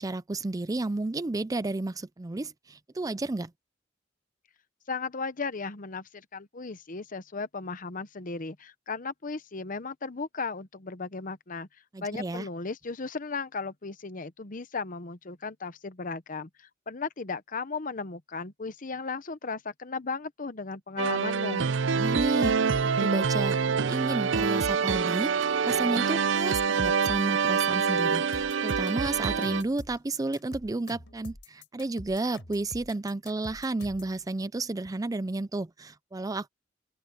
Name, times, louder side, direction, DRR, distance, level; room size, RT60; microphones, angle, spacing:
voice 1, 0.0-3.5 11.9-12.5 21.9-22.5 22.8-23.6 23.8-36.5, right 2 dB, 20° right, 0.4 m, -32 dB
voice 2, 4.9-11.7 12.0-21.6, left 4 dB, 45° left, 0.9 m, -36 dB
sound 1, 21.0-29.6, right 5 dB, 75° right, 0.6 m, -26 dB
sound 2, 28.3-34.2, left 1 dB, 75° left, 4.7 m, -45 dB
head